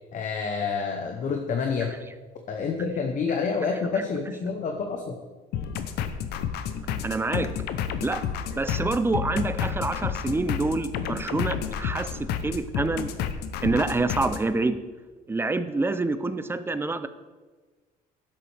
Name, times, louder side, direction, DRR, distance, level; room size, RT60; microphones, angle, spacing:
voice 1, 0.1-2.0 2.5-5.2, left 5 dB, 50° left, 4 dB, 0.9 m, -28 dB
sound 1, 5.5-14.4, left 8 dB, 80° left, 0.7 m, -30 dB
voice 2, 7.0-7.5 8.0-8.2 8.5-13.1 13.6-14.8 15.3-17.1, right 3 dB, 15° right, 11 dB, 0.5 m, -27 dB
11.0 x 7.5 x 3.4 m, 1.3 s
cardioid pair, 110°, 17 cm